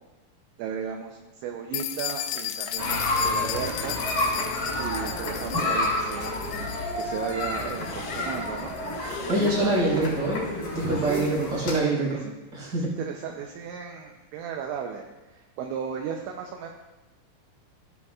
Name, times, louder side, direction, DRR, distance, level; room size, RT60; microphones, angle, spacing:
voice 1, 0.6-4.0 4.3-6.4 7.0-8.8 9.2-10.1 11.1-11.4 12.1-12.3 12.7-16.7, right 7 dB, 80° right, 2 dB, 2.8 m, -35 dB
sound 1, 1.7-9.5, left 11 dB, 90° left, 3.3 m, -36 dB
sound 2, 2.8-11.8, left 2 dB, 40° left, 3.8 m, -30 dB
voice 2, 9.3-12.2 12.5-12.9, right 2 dB, 20° right, -7 dB, 4.4 m, -25 dB
16.0 x 10.5 x 2.4 m, 1.1 s
omnidirectional pair, 5.7 m